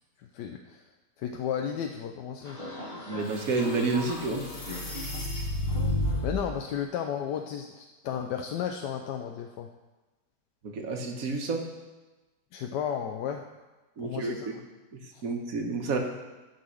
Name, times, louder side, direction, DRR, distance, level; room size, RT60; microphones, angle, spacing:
voice 1, 0.2-0.8 1.2-2.6 6.2-9.7 12.5-13.4 14.0-14.6 15.1-15.2, left 8 dB, 85° left, 4 dB, 1.2 m, -33 dB
sound 1, 2.4-6.5, left 1 dB, 35° left, 2.0 m, -32 dB
voice 2, 3.1-4.4 10.6-11.6 14.0-14.6 14.9-16.0, right 3 dB, 55° right, 2 dB, 1.5 m, -30 dB
11.5 x 4.2 x 6.2 m, 1.1 s
omnidirectional pair, 1.8 m